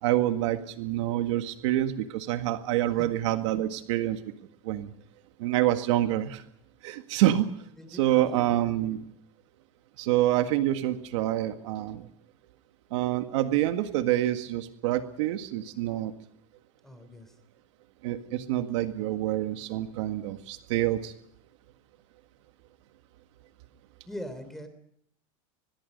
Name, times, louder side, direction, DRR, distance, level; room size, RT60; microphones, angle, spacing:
voice 1, 0.0-4.2 4.6-4.9 5.4-6.4 6.8-7.5 7.9-9.0 10.0-12.1 12.9-16.1 18.0-21.1, right 14 dB, 60° right, 8 dB, 1.8 m, -27 dB
voice 2, 7.8-8.8 16.8-17.3 24.1-24.7, equal, ahead, 10 dB, 3.3 m, -42 dB
24.0 x 21.0 x 5.4 m, 0.70 s
supercardioid pair, 155°, 17 cm